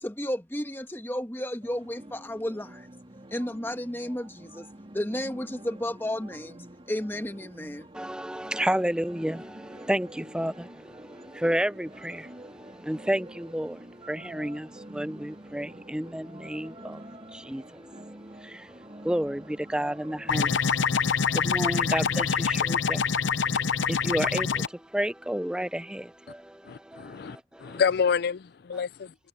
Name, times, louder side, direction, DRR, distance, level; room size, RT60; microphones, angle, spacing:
voice 1, 0.0-2.9 3.3-4.7 4.9-7.9, left 1 dB, 10° left, 1.4 m, -33 dB
sound 1, 1.6-20.4, right 1 dB, 30° right, 3.0 m, -47 dB
voice 2, 7.9-27.8, right 1 dB, 5° right, 0.4 m, -32 dB
sound 2, 20.3-24.7, left 6 dB, 80° left, 0.7 m, -25 dB
voice 3, 26.6-29.1, left 6 dB, 55° left, 0.4 m, -28 dB
head